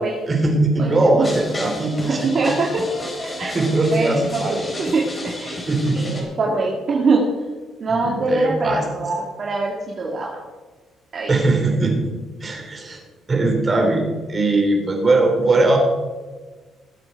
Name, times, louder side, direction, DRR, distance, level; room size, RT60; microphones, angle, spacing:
voice 1, 0.3-2.3 3.5-4.6 5.7-6.2 7.9-8.8 11.3-12.1 12.4-13.0 13.3-15.8, right 2 dB, 30° right, 2 dB, 3.7 m, -20 dB
voice 2, 0.8-1.2 2.0-2.8 3.4-3.5 3.9-5.7 5.9-7.2 7.8-10.3 11.1-11.3, right 3 dB, 50° right, -2 dB, 2.2 m, -23 dB
sound 1, 1.2-6.2, left 1 dB, 25° left, 4.6 m, -32 dB
19.5 x 7.9 x 4.7 m, 1.3 s
cardioid pair, 90°, 0 cm